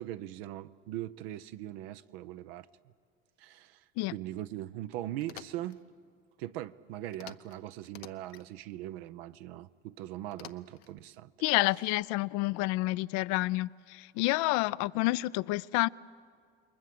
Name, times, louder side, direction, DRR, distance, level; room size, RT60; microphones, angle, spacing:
voice 1, 0.0-2.7 3.4-3.8 4.1-5.8 6.4-11.3, right 14 dB, 75° right, 0.7 m, -40 dB
sound 1, 5.2-5.8 7.1-7.6 7.8-8.5 10.3-10.9, left 12 dB, 85° left, 0.9 m, -49 dB
voice 2, 11.4-15.9, left 20 dB, 65° left, 0.5 m, -29 dB
28.5 x 21.5 x 7.7 m
hypercardioid pair, 80°, 31 cm